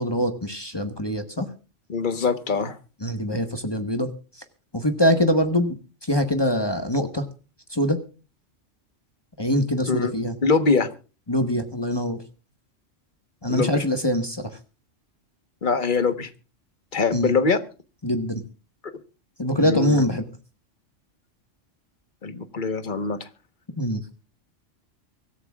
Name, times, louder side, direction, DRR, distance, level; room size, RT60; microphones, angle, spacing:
voice 1, 0.0-1.5 3.0-4.1 4.7-5.8 6.0-7.2 7.7-8.0 9.4-10.3 11.3-12.2 13.4-14.5 17.1-17.3 18.0-18.4 19.4-20.2 23.8-24.0, equal, 20° left, 6 dB, 1.4 m, -23 dB
voice 2, 1.9-2.8 9.9-10.1 10.4-10.9 13.5-13.8 15.6-16.3 16.9-17.6 19.5-20.0 22.2-23.3, left 4 dB, 40° left, 10 dB, 1.4 m, -23 dB
24.5 x 14.0 x 2.4 m, 0.35 s
omnidirectional pair, 1.3 m